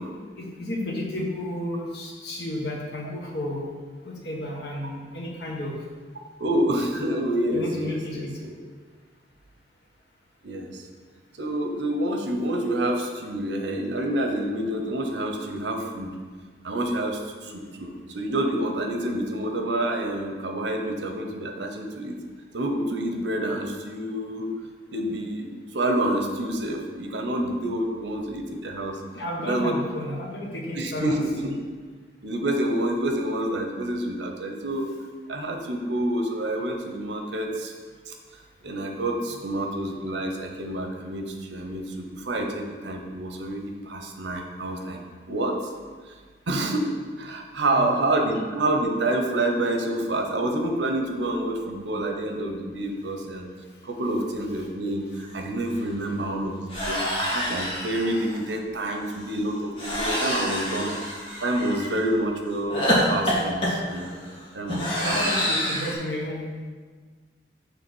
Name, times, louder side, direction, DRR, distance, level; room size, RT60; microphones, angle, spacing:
voice 1, 0.4-3.6 4.0-5.8 7.5-8.4 29.1-31.5 47.7-47.9 65.0-66.5, left 1 dB, 65° left, -2 dB, 1.3 m, -32 dB
voice 2, 6.4-8.5 10.4-10.9 11.4-16.1 16.6-22.2 22.5-24.5 24.9-29.0 29.4-29.8 30.8-31.5 32.2-34.9 35.3-37.7 38.1-38.2 38.6-45.0 45.3-45.7 46.0-46.2 46.5-53.5 53.8-60.9 61.4-64.1 64.5-65.2, right 1 dB, 80° right, 3 dB, 0.8 m, -28 dB
sound 1, 55.3-55.4 55.6-55.9 56.7-58.4 59.8-61.9 62.7-65.9, equal, 30° left, 1.7 m, -27 dB
6.8 x 3.4 x 6.2 m, 1.5 s
head